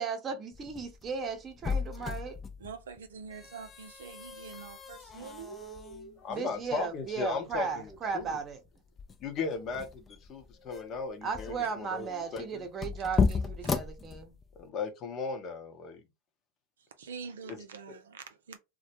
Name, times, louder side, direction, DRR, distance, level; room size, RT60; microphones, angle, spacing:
voice 1, 0.0-2.4 6.3-8.6 11.2-14.3, right 5 dB, 30° right, 0.8 m, -36 dB
sound 1, 0.5-14.7, left 5 dB, 25° left, 0.4 m, -36 dB
voice 2, 2.6-6.2 11.6-11.7 13.1-13.2 13.6-13.7 16.8-18.6, right 5 dB, 80° right, 0.5 m, -45 dB
voice 3, 6.2-8.4 9.2-12.7 14.6-16.0 17.5-17.6, left 4 dB, 40° left, 0.8 m, -37 dB
2.2 x 2.1 x 2.8 m
hypercardioid pair, 90°, 0 cm